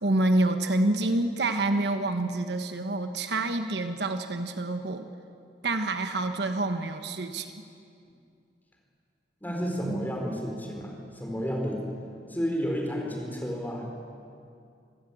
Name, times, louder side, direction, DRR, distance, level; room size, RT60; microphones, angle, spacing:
voice 1, 0.0-5.1 5.6-7.5, right 2 dB, 65° right, 7 dB, 1.3 m, -27 dB
voice 2, 9.4-11.8 12.3-13.8, equal, 10° left, 1 dB, 4.4 m, -31 dB
26.5 x 17.0 x 8.8 m, 2.4 s
head